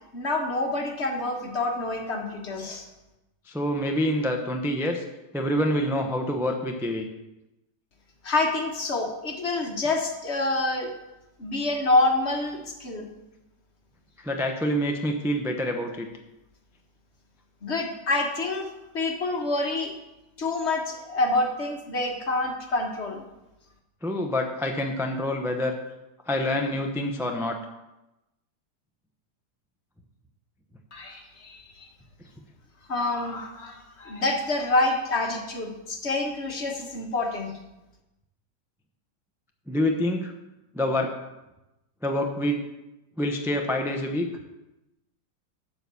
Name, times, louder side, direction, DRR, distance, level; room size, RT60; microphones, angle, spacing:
voice 1, 0.1-2.8 8.2-10.9 11.4-13.1 17.6-18.7 18.9-19.9 20.4-23.2 30.9-31.9 32.9-37.5, left 2 dB, 45° left, 3 dB, 1.4 m, -27 dB
voice 2, 3.5-5.0 5.3-7.1 14.2-16.1 24.0-25.8 26.3-27.6 39.7-40.3 40.7-41.1 42.0-42.7 43.2-44.3, left 1 dB, 5° right, 3 dB, 0.5 m, -26 dB
12.0 x 4.9 x 6.9 m, 0.97 s
omnidirectional pair, 1.8 m